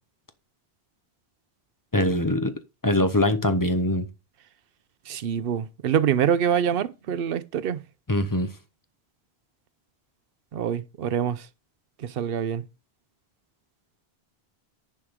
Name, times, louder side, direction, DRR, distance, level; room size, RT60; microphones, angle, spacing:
voice 1, 1.9-2.5 2.8-4.1 8.1-8.5, left 1 dB, 20° left, 0.7 m, -22 dB
voice 2, 5.1-7.8 10.5-11.5 12.0-12.6, right 8 dB, 65° right, 0.8 m, -25 dB
10.5 x 4.6 x 5.1 m
omnidirectional pair, 1.1 m